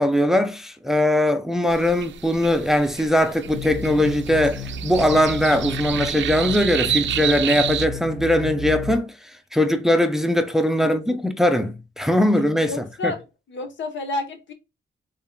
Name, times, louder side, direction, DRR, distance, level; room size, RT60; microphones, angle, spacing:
voice 1, 0.0-9.1 9.5-13.1, left 1 dB, ahead, 0.5 m, -20 dB
sound 1, 1.7-7.9, right 10 dB, 80° right, 0.4 m, -30 dB
sound 2, 3.4-9.0, left 1 dB, 45° left, 1.0 m, -32 dB
voice 2, 12.6-13.2 13.5-14.5, left 2 dB, 80° left, 1.1 m, -30 dB
3.7 x 3.5 x 2.3 m
wide cardioid pair, 150°, 19 cm